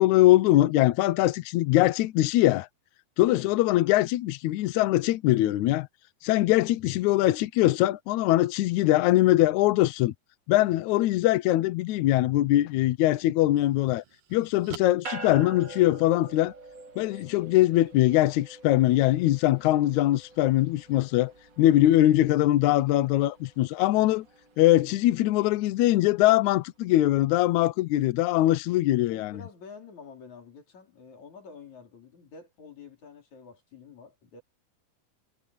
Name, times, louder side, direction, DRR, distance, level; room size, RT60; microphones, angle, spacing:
voice 1, 0.0-2.7 3.2-5.9 6.2-10.1 10.5-14.0 14.3-16.5 17.0-21.3 21.6-24.2 24.6-29.4, left 15 dB, 85° left, 1.7 m, -22 dB
sound 1, 12.5-12.6 13.2-16.2, right 10 dB, 70° right, 3.0 m, -49 dB
sound 2, 15.0-26.6, right 3 dB, 40° right, 1.2 m, -47 dB
voice 2, 22.9-23.2 29.1-34.4, left 5 dB, 50° left, 5.2 m, -48 dB
omnidirectional pair, 4.3 m